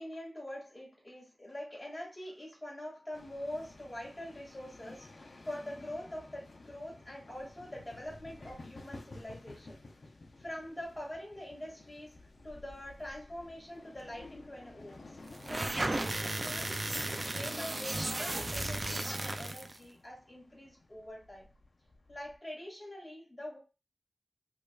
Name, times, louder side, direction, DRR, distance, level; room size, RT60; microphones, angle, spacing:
voice 1, 0.0-9.8 10.4-12.2 12.4-15.1 15.4-21.5 22.1-23.6, left 1 dB, 25° left, -3 dB, 1.9 m, -44 dB
sound 1, 3.1-22.4, left 2 dB, 60° left, 0.6 m, -53 dB
sound 2, 15.3-19.8, right 2 dB, 35° right, 0.4 m, -35 dB
5.0 x 2.4 x 2.3 m, 0.29 s
wide cardioid pair, 90°, 0 cm